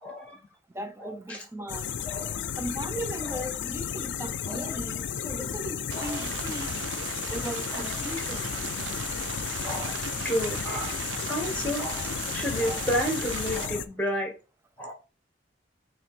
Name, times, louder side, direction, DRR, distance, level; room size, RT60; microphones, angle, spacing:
voice 1, 0.0-0.4 1.0-1.4 2.0-2.4 4.5-4.7 6.0-6.1 7.7-7.8 9.6-14.3 14.8-14.9, equal, 5° left, 1.5 m, -31 dB
voice 2, 0.7-1.9 2.6-6.8 7.3-8.5 9.1-9.3, equal, 15° right, 0.6 m, -37 dB
sound 1, 1.7-13.9, left 8 dB, 80° left, 0.5 m, -33 dB
sound 2, 5.9-13.7, right 8 dB, 85° right, 0.4 m, -37 dB
6.0 x 3.1 x 5.0 m
head